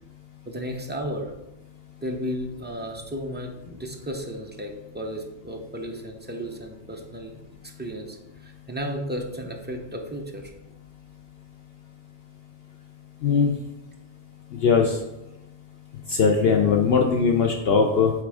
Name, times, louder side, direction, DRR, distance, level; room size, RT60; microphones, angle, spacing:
voice 1, 0.5-1.3 2.0-7.4 7.6-10.5, equal, 10° right, 1 dB, 0.7 m, -34 dB
voice 2, 13.2-13.5 14.5-15.0 16.1-18.1, left 5 dB, 60° left, 2 dB, 0.8 m, -20 dB
9.5 x 3.6 x 3.5 m, 0.92 s
omnidirectional pair, 1.2 m